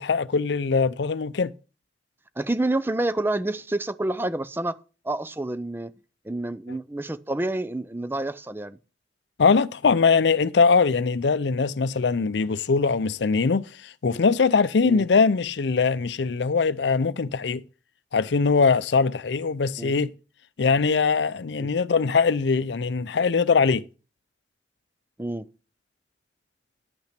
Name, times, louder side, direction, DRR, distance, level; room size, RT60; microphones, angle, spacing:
voice 1, 0.0-1.5 6.7-6.8 9.4-17.6 18.1-20.1 20.6-23.8, left 5 dB, 80° left, 0.5 m, -22 dB
voice 2, 2.4-4.8 5.0-5.9 6.2-8.8 14.8-15.0 19.8-19.9 21.6-21.7 25.2-25.5, right 2 dB, 10° right, 0.5 m, -28 dB
10.5 x 5.8 x 5.9 m
head